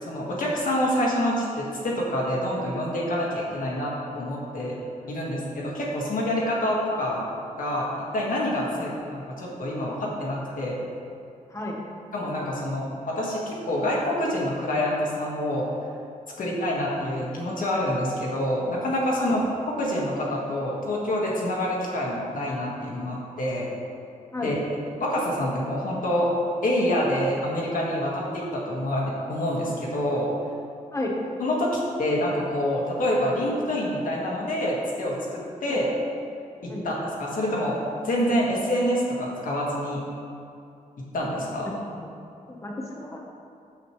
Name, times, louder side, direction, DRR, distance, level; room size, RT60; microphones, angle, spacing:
voice 1, 0.0-4.8 5.1-7.3 7.6-7.9 8.1-10.8 12.1-15.6 16.4-19.5 19.8-23.7 24.4-24.6 25.0-26.3 26.6-30.3 31.4-35.9 36.6-36.9 37.2-37.8 38.0-40.0 41.1-41.7, left 1 dB, 75° left, -4 dB, 1.7 m, -27 dB
voice 2, 16.4-16.7 19.2-19.4 24.3-24.5 30.9-31.2 35.7-35.8 36.7-36.9 42.0-42.1 42.5-43.2, left 1 dB, 20° left, -1 dB, 1.1 m, -33 dB
8.8 x 7.6 x 3.2 m, 2.5 s
wide cardioid pair, 155°, 14 cm